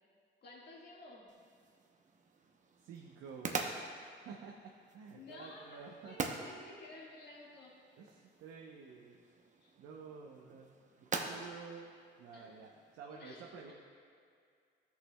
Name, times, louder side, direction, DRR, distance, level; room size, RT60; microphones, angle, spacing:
voice 1, 0.4-1.3 5.1-7.7 9.6-9.8 12.3-12.5 13.0-13.7, left 2 dB, 55° left, -4 dB, 1.7 m, -53 dB
sound 1, 1.3-13.0, right 4 dB, 40° right, 0.7 m, -45 dB
voice 2, 2.8-3.8 4.2-6.2 8.0-9.2 9.8-13.7, right 5 dB, 90° right, 0 dB, 0.7 m, -51 dB
13.5 x 6.5 x 2.2 m, 2.3 s
cardioid pair, 90°, 20 cm